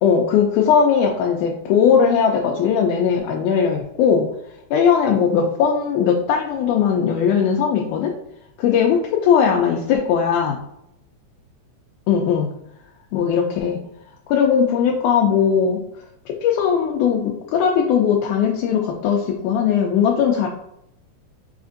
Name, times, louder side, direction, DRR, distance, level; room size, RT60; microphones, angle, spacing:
voice 1, 0.0-4.3 4.7-8.1 8.6-10.6 12.1-12.5 13.1-13.8 14.3-15.8 16.3-20.5, left 7 dB, 85° left, 0 dB, 2.0 m, -19 dB
5.1 x 2.5 x 2.5 m, 0.78 s
omnidirectional pair, 3.5 m